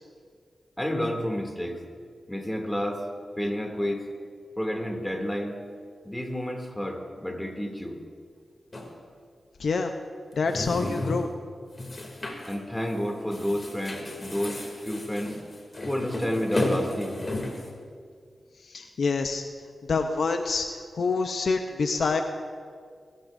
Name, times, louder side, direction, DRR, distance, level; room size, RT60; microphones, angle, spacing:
voice 1, 0.8-1.8 2.3-3.0 3.4-4.1 4.6-5.6 6.0-8.0 12.5-15.4 15.8-17.2, equal, 10° left, 2 dB, 2.5 m, -30 dB
sound 1, 8.7-8.9 10.3-11.3 11.7-12.6 12.9-13.0 13.3-17.7, left 1 dB, 40° left, 2.6 m, -33 dB
voice 2, 9.6-9.9 10.3-11.3 18.6-19.4 19.9-22.2, left 4 dB, 75° left, 6 dB, 0.7 m, -26 dB
21.5 x 13.0 x 2.6 m, 2.1 s
cardioid pair, 50°, 0 cm